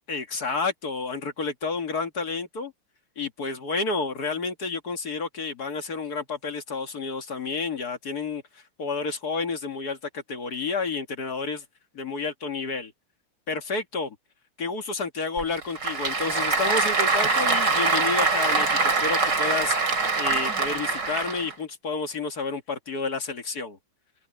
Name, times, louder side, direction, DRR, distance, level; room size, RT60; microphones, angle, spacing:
voice 1, 0.1-2.7 3.1-8.4 8.8-11.6 11.9-12.9 13.5-14.1 14.6-23.8, left 4 dB, 40° left, 1.8 m, -30 dB
Applause / Crowd, 15.4-21.5, right 4 dB, 35° right, 3.6 m, -24 dB
omnidirectional pair, 3.4 m